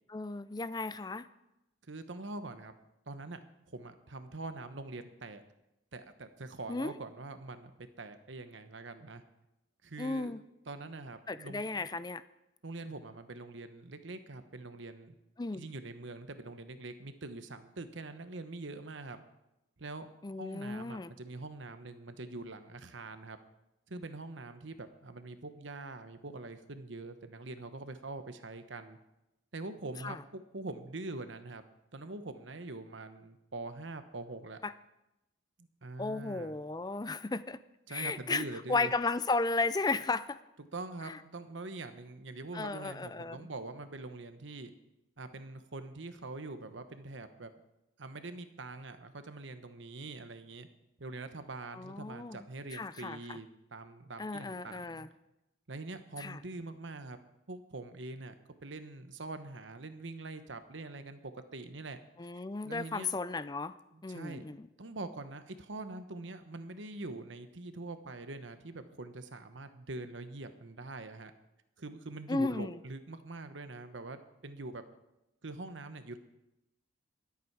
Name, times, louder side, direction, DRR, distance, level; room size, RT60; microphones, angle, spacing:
voice 1, 0.1-1.3 6.7-6.9 10.0-10.4 11.3-12.2 15.4-15.6 20.2-21.1 30.0-30.2 34.6-34.7 36.0-37.6 37.9-40.4 41.0-41.2 42.5-43.4 51.7-52.5 52.7-53.2 54.2-55.1 56.2-56.4 62.2-63.7 64.0-64.7 72.3-72.8, left 3 dB, 20° left, 15 dB, 0.4 m, -34 dB
voice 2, 1.9-2.7 3.1-3.4 3.7-5.4 5.9-7.7 8.0-9.2 9.8-10.3 10.7-11.9 12.6-15.1 15.5-19.2 19.8-20.1 20.4-23.4 23.9-29.0 29.5-31.6 31.9-34.6 35.6-36.6 37.9-38.9 40.6-44.7 45.2-47.5 48.0-50.7 51.0-55.1 55.7-57.2 57.5-58.3 58.6-62.0 62.6-63.1 63.9-64.4 64.8-71.3 71.8-74.8 75.4-76.2, right 2 dB, 75° right, 9 dB, 1.1 m, -44 dB
22.0 x 8.4 x 4.7 m, 0.92 s
head